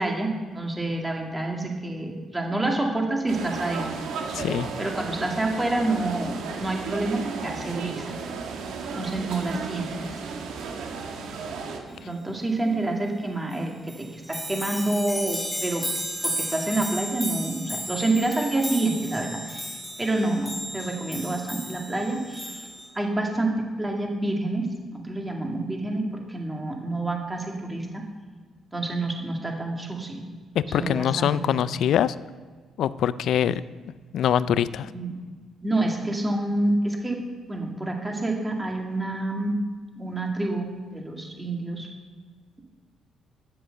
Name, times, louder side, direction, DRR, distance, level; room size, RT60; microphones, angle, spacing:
voice 1, 0.0-3.9 4.8-8.2 9.0-9.9 11.9-15.9 16.2-19.7 20.0-22.7 22.9-24.7 24.9-28.1 28.7-30.2 30.7-31.6 34.9-35.1 35.6-37.2 37.5-39.6 40.0-41.9, right 2 dB, 15° right, 1 dB, 2.2 m, -28 dB
sound 1, 3.3-11.8, right 5 dB, 85° right, 1.4 m, -34 dB
voice 2, 4.3-4.7 30.7-32.1 32.8-33.6 34.1-34.9, left 9 dB, 75° left, 17 dB, 0.4 m, -23 dB
sound 2, 13.5-13.6 13.9-22.9, equal, 5° left, 4.0 m, -34 dB
10.0 x 7.6 x 6.6 m, 1.5 s
cardioid pair, 90°, 0 cm